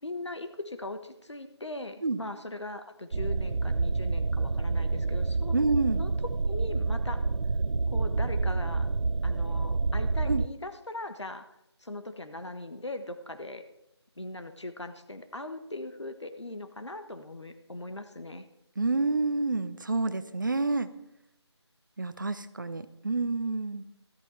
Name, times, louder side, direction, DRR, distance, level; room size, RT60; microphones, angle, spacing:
voice 1, 0.0-5.5 5.9-6.1 6.4-7.2 7.9-8.9 9.2-11.5 11.8-13.6 14.2-18.4, left 2 dB, 80° left, 8 dB, 1.3 m, -40 dB
sound 1, 3.1-10.5, right 3 dB, 90° right, 0.5 m, -28 dB
voice 2, 5.5-6.0 10.3-10.4 18.8-20.9 22.0-23.8, right 3 dB, 45° right, 13 dB, 0.7 m, -28 dB
14.0 x 12.0 x 4.2 m, 0.84 s
figure-of-eight pair, 165°, 15 cm